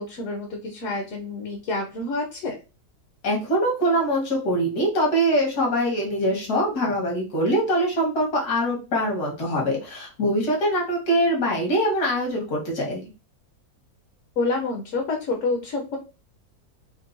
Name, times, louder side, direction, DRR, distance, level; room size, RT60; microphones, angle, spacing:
voice 1, 0.0-2.5 14.4-16.0, left 3 dB, 60° left, 2 dB, 1.0 m, -28 dB
voice 2, 3.2-13.0, equal, 75° left, -1 dB, 1.8 m, -23 dB
4.5 x 2.2 x 2.5 m, 0.31 s
omnidirectional pair, 1.7 m